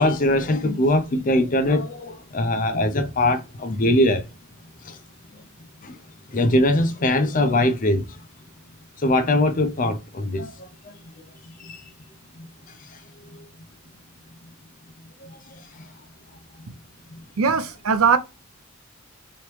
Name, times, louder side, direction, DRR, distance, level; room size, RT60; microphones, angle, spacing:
voice 1, 0.0-4.3 4.8-5.0 5.8-6.0 6.3-8.2 9.0-10.5 11.2-11.3 11.6-11.8 12.4-12.5 15.2-15.4 15.8-15.9, left 1 dB, 35° left, 0.5 m, -21 dB
voice 2, 17.4-18.2, right 5 dB, 75° right, 0.5 m, -19 dB
3.1 x 2.9 x 3.1 m
head